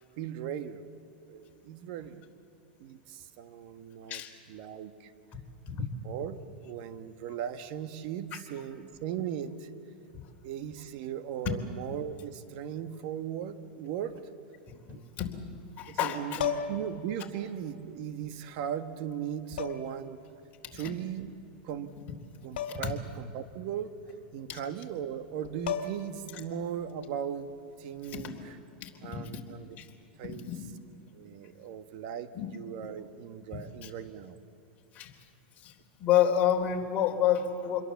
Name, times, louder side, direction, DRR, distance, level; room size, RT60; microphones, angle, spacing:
voice 1, 0.2-0.8 1.3-2.3 2.8-4.2 4.5-5.1 5.7-5.8 6.0-9.7 10.4-14.1 14.9-15.1 15.9-20.2 20.7-21.4 21.6-21.9 22.4-23.9 24.3-27.5 27.8-28.6 29.0-29.8 30.2-30.5 31.1-34.4, right 9 dB, 60° right, 9 dB, 1.7 m, -38 dB
voice 2, 15.8-16.4 20.7-20.9 22.7-22.9 24.5-24.6 28.0-28.3 28.8-29.2 29.8-29.9 30.5-30.7 32.3-32.5 33.5-33.9 34.9-35.1 35.6-35.7 36.0-37.8, left 10 dB, 35° left, 1 dB, 3.7 m, -29 dB
sound 1, 16.4-17.0 18.3-18.4 19.6-20.0 22.6-23.0 23.3-23.4 25.2-25.3 25.7-26.2 28.2-28.4, left 8 dB, 75° left, 2.2 m, -34 dB
27.0 x 22.0 x 7.3 m, 2.7 s
supercardioid pair, 125°, 5 cm